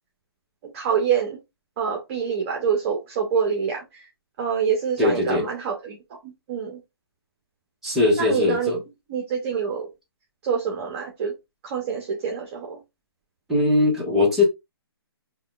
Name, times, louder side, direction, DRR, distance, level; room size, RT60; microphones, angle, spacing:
voice 1, 0.7-1.4 1.8-4.1 4.4-6.0 6.2-6.8 8.2-8.7 9.1-9.9 10.4-11.3 11.6-12.8, right 7 dB, 35° right, 0.9 m, -26 dB
voice 2, 5.0-5.5 7.8-8.8 13.5-14.4, left 2 dB, ahead, 1.1 m, -20 dB
5.4 x 2.4 x 2.4 m
figure-of-eight pair, 135°, 13 cm